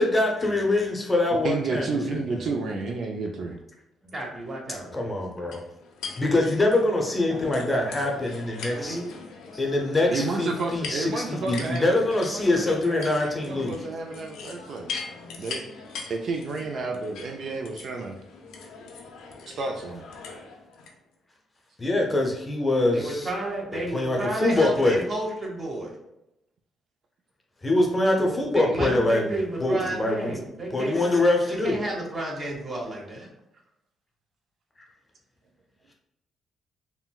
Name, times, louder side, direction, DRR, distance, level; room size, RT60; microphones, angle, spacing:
voice 1, 0.0-1.8 2.1-2.2 4.0-4.1 4.9-5.6 6.2-9.0 9.5-13.8 21.8-23.3 23.9-25.0 27.6-29.3 29.6-30.3 30.7-31.7, left 2 dB, 20° left, 1 dB, 0.6 m, -24 dB
voice 2, 1.4-3.6 10.1-14.9 15.4-15.6 16.1-18.2 19.5-20.1, right 3 dB, 60° right, 3 dB, 0.3 m, -31 dB
voice 3, 4.1-5.1 7.3-8.1 8.6-9.0 22.9-26.0 28.2-31.0 31.5-33.3, right 1 dB, 35° right, -2 dB, 1.0 m, -32 dB
sound 1, 5.5-20.9, left 4 dB, 85° left, 0.5 m, -41 dB
3.7 x 2.1 x 2.3 m, 0.86 s
cardioid pair, 90°, 0 cm